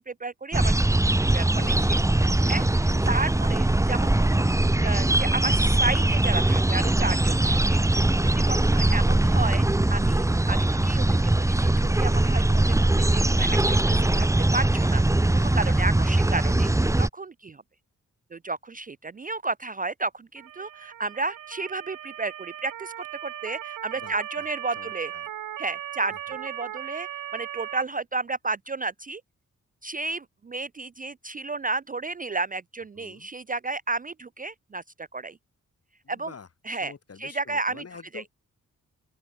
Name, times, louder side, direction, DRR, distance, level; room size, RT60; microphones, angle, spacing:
voice 1, 0.1-0.9 1.3-1.6 1.9-2.0 2.5-4.5 4.8-9.6 9.9-14.3 14.5-17.6 18.3-25.1 25.6-29.2 29.8-35.4 36.1-36.3 36.7-36.9 37.2-37.8 38.1-38.2, right 3 dB, 25° right, 0.5 m, -32 dB
sound 1, 0.5-17.1, right 2 dB, 10° right, 1.0 m, -21 dB
voice 2, 1.5-2.5 2.9-3.7 7.9-8.1 23.9-25.3 26.1-26.2 32.9-33.3 36.0-36.5 36.7-38.3, left 5 dB, 50° left, 4.5 m, -47 dB
Motor vehicle (road) / Siren, 20.4-27.8, right 11 dB, 90° right, 0.9 m, -38 dB
open air
wide cardioid pair, 110°, 31 cm